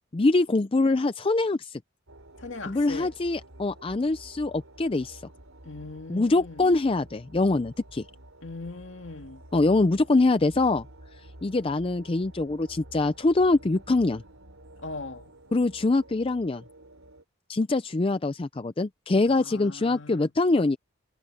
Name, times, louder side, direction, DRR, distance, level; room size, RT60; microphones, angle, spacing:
voice 1, 0.1-1.8 2.7-5.2 6.1-8.1 9.5-10.8 11.4-14.2 15.5-16.6 17.5-20.8, left 2 dB, 25° left, 0.4 m, -24 dB
sound 1, 2.1-17.2, right 1 dB, 80° right, 3.9 m, -50 dB
voice 2, 2.4-3.1 5.6-6.7 8.4-9.4 14.8-15.3 19.3-20.3, left 3 dB, 60° left, 2.3 m, -40 dB
head